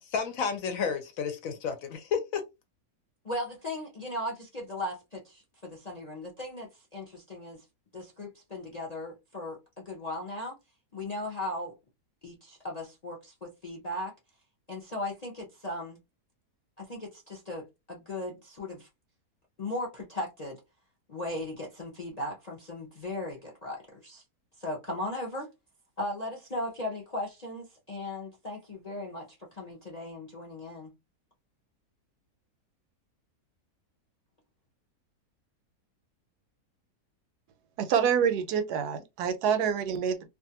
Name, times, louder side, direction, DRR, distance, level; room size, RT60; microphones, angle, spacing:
voice 1, 0.1-2.4, left 6 dB, 70° left, 0.9 m, -31 dB
voice 2, 3.2-7.6 7.9-10.6 10.9-11.7 12.2-14.1 14.7-16.0 16.8-18.9 19.6-20.6 21.1-24.2 24.6-25.5 26.0-29.3 29.5-30.9, left 1 dB, 45° left, 0.5 m, -37 dB
voice 3, 37.8-40.3, right 7 dB, 80° right, 1.1 m, -27 dB
2.6 x 2.4 x 2.7 m
omnidirectional pair, 1.7 m